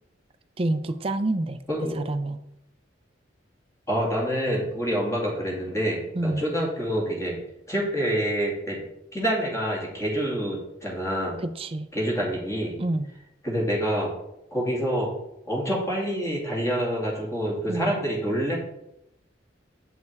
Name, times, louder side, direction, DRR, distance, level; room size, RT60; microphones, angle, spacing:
voice 1, 0.6-1.6 1.9-2.4 6.1-6.4 11.6-11.9 12.8-13.1 17.7-17.9, right 2 dB, 30° right, 10 dB, 0.5 m, -27 dB
voice 2, 1.7-2.0 3.9-7.4 7.7-8.8 9.1-11.4 11.9-12.8 13.4-14.1 14.5-15.1 15.5-18.6, equal, 15° left, -3 dB, 2.3 m, -27 dB
8.2 x 5.4 x 4.6 m, 0.85 s
head